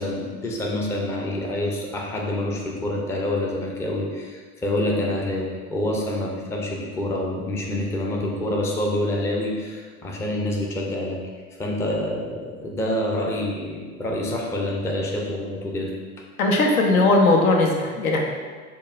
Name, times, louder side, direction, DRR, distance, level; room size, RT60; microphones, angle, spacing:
voice 1, 0.0-11.2 11.6-15.9, left 1 dB, 5° left, -1 dB, 0.3 m, -27 dB
voice 2, 16.4-18.2, left 2 dB, 80° left, 1 dB, 0.6 m, -18 dB
5.4 x 2.2 x 2.4 m, 1.5 s
figure-of-eight pair, 70°, 43 cm